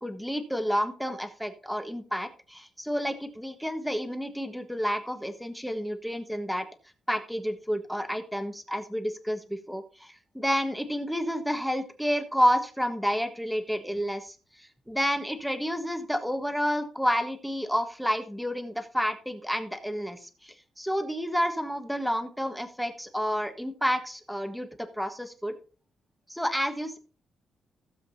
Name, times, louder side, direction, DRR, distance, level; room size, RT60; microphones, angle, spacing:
voice 1, 0.0-6.6 7.1-14.3 14.9-24.7 25.0-25.5 26.3-27.0, equal, ahead, 7 dB, 1.2 m, -30 dB
16.0 x 7.6 x 2.7 m, 0.36 s
cardioid pair, 145°, 0 cm